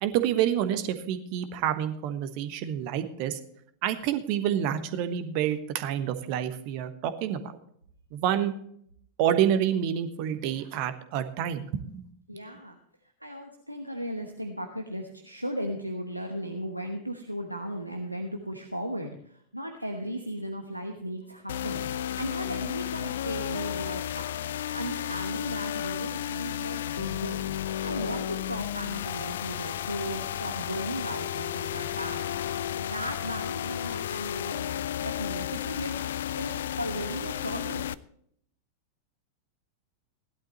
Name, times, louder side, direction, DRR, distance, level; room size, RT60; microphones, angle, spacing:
voice 1, 0.0-3.4 3.8-7.4 8.1-8.5 9.2-11.7 11.9-12.0, right 10 dB, 45° right, 10 dB, 1.3 m, -28 dB
voice 2, 12.3-12.8 13.2-21.9 22.2-24.3 24.7-27.6 27.8-32.3 32.8-37.9, equal, 90° right, 4 dB, 1.1 m, -36 dB
sound 1, 21.5-37.9, left 11 dB, 60° left, 0.4 m, -33 dB
17.0 x 12.0 x 3.0 m, 0.64 s
figure-of-eight pair, 90°, 0 cm